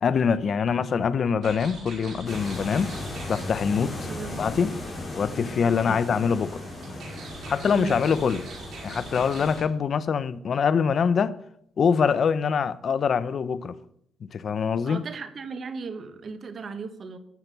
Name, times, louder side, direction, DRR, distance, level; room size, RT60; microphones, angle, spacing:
voice 1, 0.0-2.9 3.3-3.9 4.4-4.7 5.1-6.6 7.5-8.4 8.8-11.3 11.8-13.8 14.3-15.0, left 6 dB, 50° left, 0.6 m, -24 dB
sound 1, 1.4-9.6, right 3 dB, 70° right, 5.0 m, -44 dB
sound 2, 2.3-9.6, left 2 dB, 30° left, 3.5 m, -37 dB
voice 2, 14.8-17.2, right 5 dB, 50° right, 1.4 m, -36 dB
13.0 x 5.9 x 6.7 m
cardioid pair, 90°, 0 cm